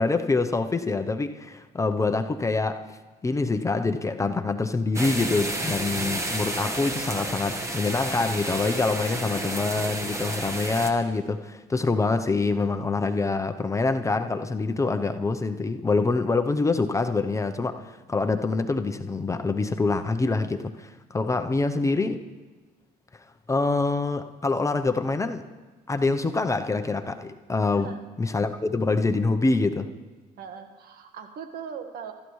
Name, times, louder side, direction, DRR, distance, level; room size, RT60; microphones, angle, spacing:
voice 1, 0.0-2.8 3.2-22.2 23.5-25.4 25.9-27.9 28.2-29.9, left 3 dB, 20° left, 0.7 m, -25 dB
sound 1, 4.9-10.9, right 1 dB, 15° right, 1.4 m, -31 dB
voice 2, 30.4-32.1, right 7 dB, 65° right, 1.5 m, -39 dB
22.5 x 13.0 x 3.2 m
cardioid pair, 110°, 17 cm